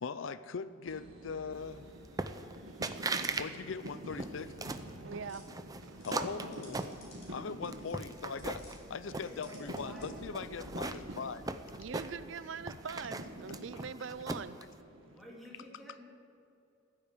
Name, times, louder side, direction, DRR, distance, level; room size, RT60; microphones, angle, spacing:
voice 1, 0.0-1.9 3.4-4.6 6.0-7.0 7.3-11.5 13.4-13.6, left 5 dB, 75° left, 14 dB, 0.5 m, -41 dB
sound 1, 0.9-15.2, right 1 dB, 90° right, 2.1 m, -48 dB
sound 2, 2.2-2.6 2.8-3.5 3.8-4.9 5.5-7.4 7.7-8.8 9.1-9.9 10.3-12.4 12.7-14.6, right 3 dB, 20° right, 0.6 m, -38 dB
voice 2, 5.0-5.5 11.1-11.2 11.8-14.6, right 5 dB, 70° right, 15 dB, 0.5 m, -42 dB
sound 3, 5.3-8.8 9.1-10.4, left 2 dB, 35° left, 4.6 m, -59 dB
voice 3, 9.1-10.1 10.5-10.7 15.1-16.0, equal, ahead, -5 dB, 3.3 m, -51 dB
15.0 x 8.6 x 9.9 m, 2.7 s
head